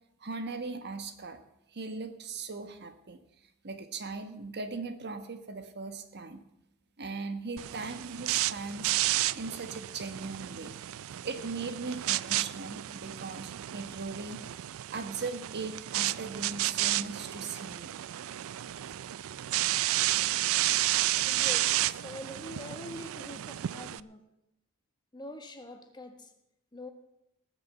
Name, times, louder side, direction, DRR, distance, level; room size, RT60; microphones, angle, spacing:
voice 1, 0.2-1.4 1.7-3.2 3.6-6.4 7.0-8.9 9.3-10.7 11.2-14.4 14.9-17.9, right 4 dB, 50° right, 8 dB, 1.3 m, -39 dB
sound 1, 7.6-24.0, right 15 dB, 65° right, 0.4 m, -32 dB
voice 2, 21.3-24.3 25.1-26.3 26.7-26.9, left 1 dB, 20° left, 6 dB, 1.5 m, -44 dB
18.5 x 6.7 x 7.9 m, 0.83 s
head